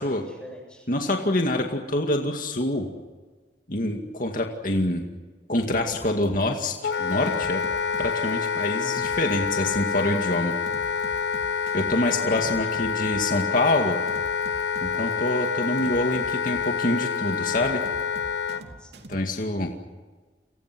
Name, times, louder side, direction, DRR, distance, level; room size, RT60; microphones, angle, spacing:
voice 1, 0.0-0.9 3.9-4.1 14.8-15.1 18.5-19.1, equal, 5° left, 1 dB, 7.2 m, -46 dB
voice 2, 0.9-2.9 3.7-5.0 5.5-7.6 8.0-10.5 11.7-14.0 14.8-17.8 19.1-19.7, left 1 dB, 50° left, 3 dB, 2.2 m, -26 dB
sound 1, 5.6-19.2, right 1 dB, 75° right, 2.9 m, -44 dB
Wind instrument woodwind instrument, 6.8-18.6, left 6 dB, 85° left, 1.2 m, -27 dB
30.0 x 25.5 x 6.2 m, 1.4 s
head